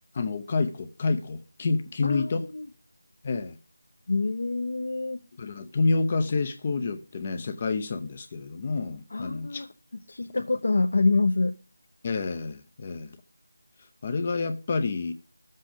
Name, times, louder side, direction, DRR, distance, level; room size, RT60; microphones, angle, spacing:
voice 1, 0.1-2.5 3.2-3.6 5.4-9.7 12.0-13.2 14.0-15.1, left 3 dB, 25° left, 0.7 m, -28 dB
voice 2, 2.0-2.7 4.1-5.2 9.1-9.7 10.1-11.6, left 3 dB, 55° left, 0.9 m, -26 dB
13.5 x 7.6 x 5.1 m
figure-of-eight pair, 175°, 0 cm